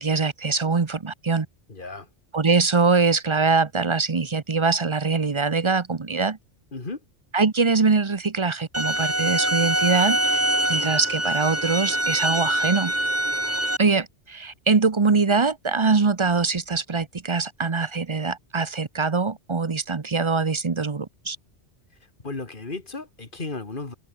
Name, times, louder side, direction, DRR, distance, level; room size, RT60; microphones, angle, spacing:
voice 1, 0.0-1.5 2.3-6.4 7.3-12.9 13.8-21.4, right 4 dB, 30° right, 0.8 m, -23 dB
voice 2, 1.7-2.1 6.7-7.0 22.2-23.9, left 3 dB, 45° left, 2.4 m, -34 dB
sound 1, 8.7-13.8, right 1 dB, 10° right, 2.5 m, -24 dB
omnidirectional pair, 1.2 m